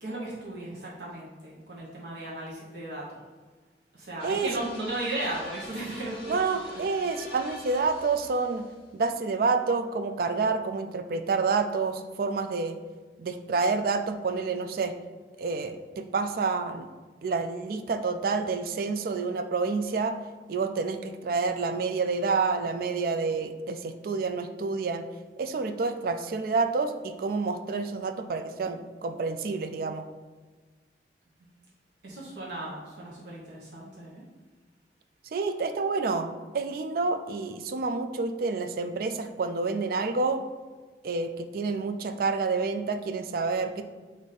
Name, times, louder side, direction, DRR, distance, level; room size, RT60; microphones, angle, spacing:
voice 1, 0.0-3.2 3.9-6.8 31.4-31.5 32.0-34.2, right 1 dB, 70° right, -6 dB, 0.9 m, -36 dB
sound 1, 4.2-8.9, left 2 dB, 30° left, 1.3 m, -46 dB
voice 2, 6.3-8.7 8.9-12.8 13.2-14.9 15.4-16.9 17.2-20.2 20.5-25.0 25.4-30.0 35.3-40.4 41.0-43.8, right 4 dB, 55° right, 8 dB, 0.3 m, -28 dB
4.1 x 2.6 x 4.8 m, 1.3 s
head